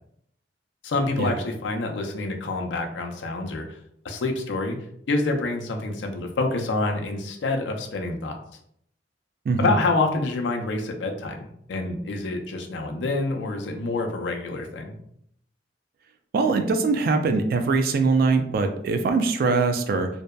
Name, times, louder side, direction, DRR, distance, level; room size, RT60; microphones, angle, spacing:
voice 1, 0.8-3.8 4.0-4.8 5.1-8.4 9.6-15.0, left 3 dB, 90° left, 3 dB, 0.4 m, -27 dB
voice 2, 9.5-9.8 16.3-20.1, right 4 dB, 55° right, 7 dB, 0.3 m, -22 dB
2.7 x 2.1 x 2.2 m, 0.71 s
head